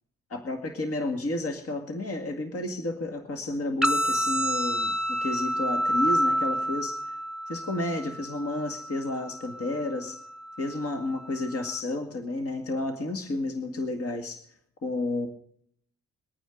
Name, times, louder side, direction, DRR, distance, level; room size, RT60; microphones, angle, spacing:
voice 1, 0.3-7.2 7.5-10.2 10.6-14.4 14.8-15.3, left 2 dB, 50° left, 5 dB, 2.2 m, -31 dB
sound 1, 3.8-11.8, equal, ahead, 1.3 m, -29 dB
23.5 x 9.3 x 3.9 m, 0.65 s
cardioid pair, 90°, 30 cm